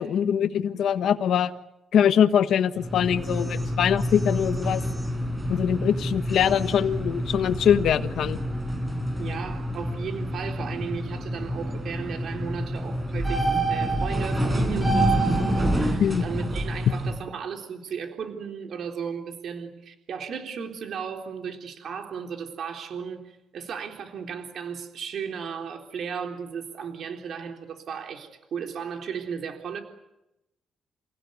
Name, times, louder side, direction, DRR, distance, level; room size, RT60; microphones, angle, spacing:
voice 1, 0.0-1.5 1.9-4.8 5.5-8.4 16.0-16.2, left 8 dB, 75° left, 9 dB, 1.4 m, -23 dB
sound 1, 2.8-17.2, right 1 dB, 20° right, 5.8 m, -27 dB
voice 2, 9.2-29.8, right 6 dB, 65° right, 4 dB, 3.7 m, -35 dB
29.5 x 16.5 x 9.6 m, 0.93 s
cardioid pair, 105°, 0 cm